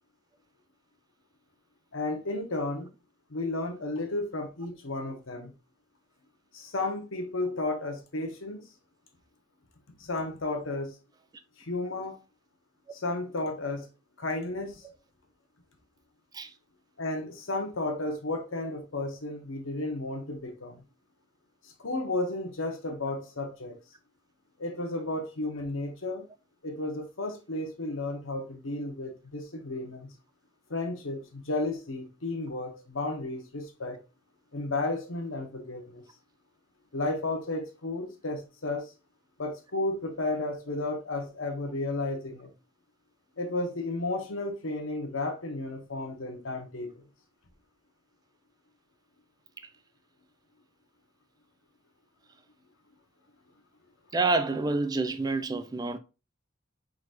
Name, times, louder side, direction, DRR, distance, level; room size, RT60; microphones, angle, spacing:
voice 1, 1.9-2.9 3.3-5.5 6.5-8.7 10.0-10.9 11.6-12.2 12.9-13.9 14.2-14.8 17.0-20.8 21.6-23.8 24.6-26.2 26.6-30.1 30.7-34.0 34.5-36.0 36.9-38.9 39.4-42.5 43.4-47.0, left 2 dB, 80° left, 1.1 m, -33 dB
voice 2, 54.1-56.0, right 3 dB, 20° right, 0.3 m, -28 dB
4.7 x 4.0 x 2.5 m
head